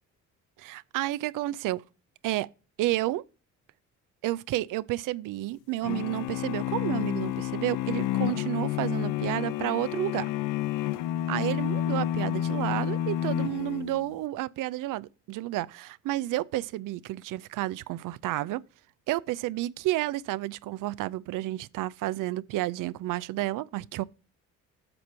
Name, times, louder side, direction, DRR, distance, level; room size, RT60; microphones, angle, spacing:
voice 1, 0.6-1.8 2.2-2.5 2.8-3.2 4.2-10.3 11.3-18.6 19.1-24.0, right 16 dB, 75° right, 0.5 m, -31 dB
sound 1, 5.8-14.2, left 12 dB, 75° left, 0.6 m, -30 dB
7.8 x 4.5 x 5.5 m
supercardioid pair, 70°, 32 cm